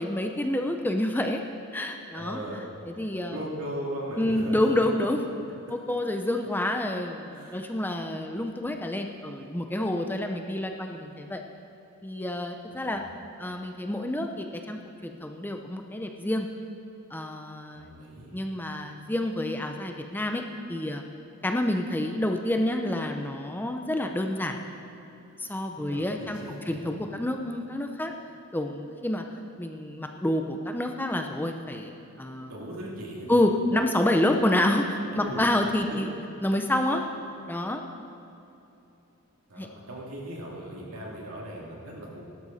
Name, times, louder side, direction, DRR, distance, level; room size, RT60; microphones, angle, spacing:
voice 1, 0.0-1.4 1.7-2.4 2.9-3.4 4.1-5.2 5.7-11.4 12.0-13.0 13.4-16.5 17.1-18.0 18.3-20.4 20.7-21.0 21.4-24.5 25.4-28.1 28.5-29.2 29.6-31.9 32.2-32.5 33.3-36.1 36.4-37.0 37.5-37.8 39.6-39.7, left 1 dB, 10° left, 4 dB, 0.6 m, -28 dB
voice 2, 2.1-2.6 3.3-4.9 7.3-7.6 12.7-13.0 17.7-18.3 25.7-26.8 32.5-33.4 35.1-35.5 35.9-36.0 39.5-42.2, right 1 dB, 70° right, -3 dB, 2.9 m, -38 dB
17.5 x 12.5 x 4.2 m, 2.9 s
head